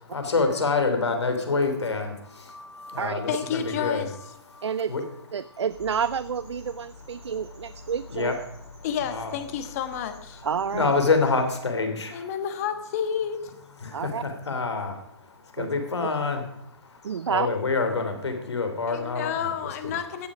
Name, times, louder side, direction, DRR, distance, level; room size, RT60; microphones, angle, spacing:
voice 1, 0.1-5.0 8.1-8.3 9.0-9.3 10.7-12.2 13.8-14.9 15.6-16.4 17.3-20.3, left 4 dB, 80° left, 6 dB, 3.3 m, -27 dB
voice 2, 3.3-4.1 8.8-10.4 12.1-13.5 18.9-20.3, left 8 dB, 35° left, 8 dB, 1.5 m, -30 dB
voice 3, 4.6-4.9 5.3-8.3 10.4-10.9 13.9-14.2 15.6-15.7 17.0-17.5, right 7 dB, 80° right, 16 dB, 0.5 m, -29 dB
sound 1, 5.7-11.6, left 2 dB, 25° right, 5.7 m, -47 dB
15.5 x 8.9 x 4.9 m, 0.75 s
hypercardioid pair, 145°, 14 cm